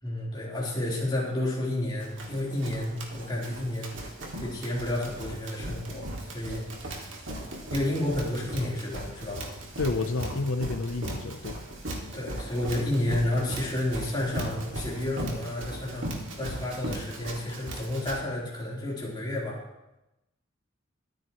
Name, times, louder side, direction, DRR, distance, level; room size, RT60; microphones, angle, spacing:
voice 1, 0.0-3.9 4.4-6.6 7.7-9.5 12.1-16.1 16.4-19.6, left 1 dB, 20° left, -5 dB, 3.7 m, -31 dB
Run, 2.0-18.2, right 1 dB, 70° right, 2.3 m, -38 dB
voice 2, 9.8-11.6, left 3 dB, 80° left, 7 dB, 0.7 m, -30 dB
22.5 x 9.3 x 3.1 m, 0.95 s
head